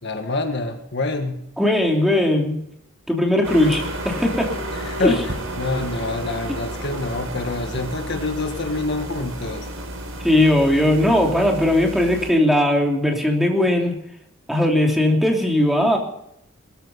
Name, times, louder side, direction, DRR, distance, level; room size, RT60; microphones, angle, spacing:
voice 1, 0.0-1.4 4.7-9.7, left 2 dB, 55° left, 5 dB, 1.7 m, -26 dB
voice 2, 1.6-2.6 3.1-4.5 5.0-5.2 10.2-14.0 14.5-16.0, left 1 dB, ahead, 0 dB, 3.1 m, -18 dB
sound 1, 3.4-12.3, right 1 dB, 80° right, 4.5 m, -32 dB
21.0 x 13.5 x 4.2 m, 0.73 s
head